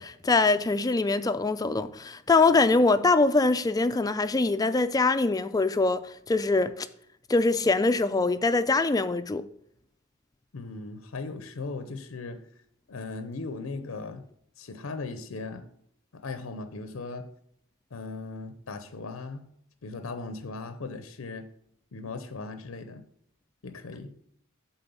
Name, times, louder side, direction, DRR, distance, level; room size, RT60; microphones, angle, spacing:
voice 1, 0.0-6.9 7.3-9.4, left 3 dB, 20° left, 0.4 m, -23 dB
voice 2, 10.5-12.4 12.9-14.2 14.6-15.7 16.1-17.3 17.9-19.5 19.8-21.5 21.9-23.0 23.6-24.1, left 3 dB, 85° left, 0.6 m, -38 dB
7.8 x 4.1 x 6.9 m
head